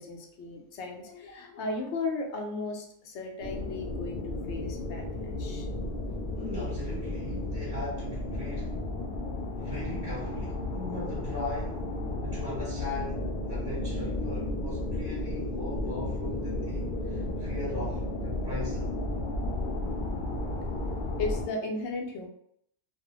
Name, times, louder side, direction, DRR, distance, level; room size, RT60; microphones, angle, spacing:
voice 1, 0.0-5.7 21.2-22.3, left 3 dB, 90° left, 2 dB, 0.9 m, -35 dB
sound 1, 3.4-21.5, left 2 dB, 65° left, 0.7 m, -33 dB
voice 2, 6.3-8.8 9.5-11.9 12.2-19.0, left 1 dB, 20° right, -8 dB, 0.8 m, -39 dB
2.4 x 2.0 x 2.9 m, 0.71 s
omnidirectional pair, 1.1 m